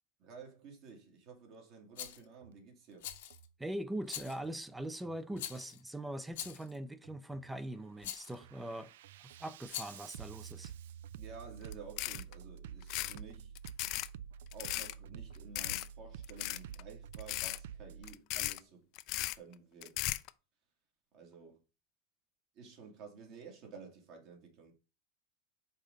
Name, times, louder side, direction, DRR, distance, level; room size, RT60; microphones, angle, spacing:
voice 1, 0.2-3.1 11.2-13.5 14.5-18.9 19.4-20.0 21.1-21.6 22.6-24.7, right 5 dB, 50° right, 2.2 m, -52 dB
Rattle, 2.0-2.2 3.0-3.5 4.1-4.5 5.4-5.8 6.3-6.8 8.0-8.4 9.6-10.1, left 12 dB, 80° left, 0.9 m, -43 dB
Bass drum, 2.3-2.6 3.0-3.5 4.3-4.6 5.0-5.5 6.3-6.6 7.0-7.5 7.9-18.2, right 8 dB, 85° right, 0.3 m, -50 dB
voice 2, 3.6-8.9 9.2-10.7, right 1 dB, 5° right, 0.5 m, -42 dB
sound 1, 11.6-11.7 12.0-12.3 12.8-13.2 13.5-14.1 14.5-14.9 15.5-15.9 16.2-16.8 17.1-17.6 18.0-18.6 19.0-19.4 19.8-20.3, left 18 dB, 50° left, 0.4 m, -37 dB
5.4 x 3.7 x 5.1 m
supercardioid pair, 140°, 0 cm